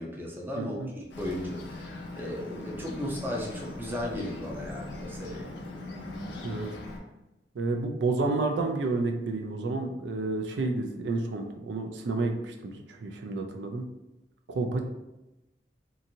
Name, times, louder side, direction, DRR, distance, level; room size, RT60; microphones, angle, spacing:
voice 1, 0.0-5.5, left 1 dB, 10° right, -2 dB, 0.5 m, -36 dB
voice 2, 0.6-0.9 6.4-6.7 7.6-13.9 14.5-14.8, right 3 dB, 80° right, 4 dB, 0.4 m, -30 dB
Bird, 1.1-7.0, left 2 dB, 80° left, 0.6 m, -40 dB
2.8 x 2.5 x 2.6 m, 0.99 s
head